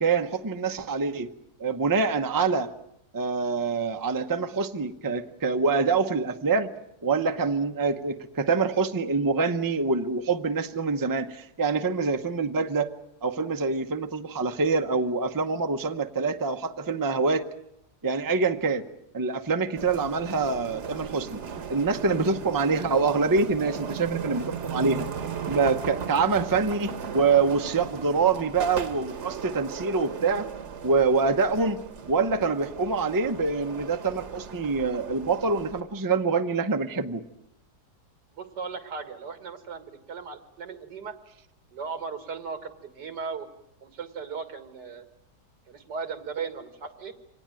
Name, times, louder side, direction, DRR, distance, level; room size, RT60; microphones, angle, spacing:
voice 1, 0.0-1.3 1.6-2.7 3.1-6.7 7.0-12.9 13.2-17.5 18.0-18.8 19.1-21.4 21.7-25.1 25.5-30.5 30.8-31.8 32.1-37.2, right 4 dB, 20° right, 7 dB, 0.6 m, -25 dB
sound 1, 19.8-35.8, right 6 dB, 50° right, 1.3 m, -37 dB
voice 2, 38.3-41.2 41.7-43.5 43.8-45.1 45.7-47.1, right 5 dB, 90° right, 9 dB, 2.4 m, -37 dB
25.0 x 19.0 x 9.0 m, 0.81 s
omnidirectional pair, 1.8 m